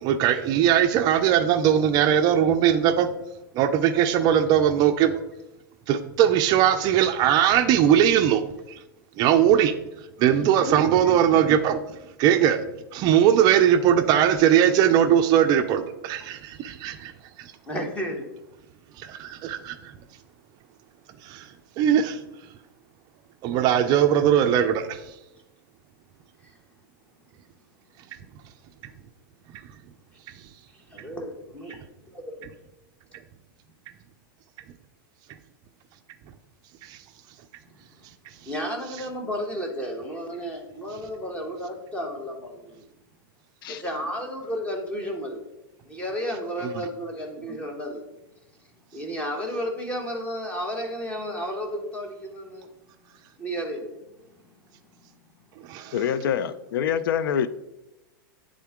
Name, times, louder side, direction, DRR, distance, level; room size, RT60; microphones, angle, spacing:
voice 1, 0.0-3.1 3.5-5.2 5.9-8.4 8.7-8.8 9.2-9.8 10.2-11.8 12.2-12.6 12.9-17.1 17.4-17.5 19.0-19.9 21.2-22.2 23.4-25.1 36.8-37.0 46.6-46.8 55.6-56.0, right 9 dB, 35° right, 8 dB, 0.4 m, -20 dB
voice 2, 17.7-18.3 30.9-31.8 32.1-32.4 38.4-42.8 43.7-45.4 45.8-48.0 48.9-52.7 53.4-53.9, equal, 10° left, 2 dB, 1.2 m, -32 dB
voice 3, 55.9-57.5, left 8 dB, 75° left, 14 dB, 0.4 m, -25 dB
9.4 x 3.7 x 3.6 m, 0.96 s
supercardioid pair, 140°, 12 cm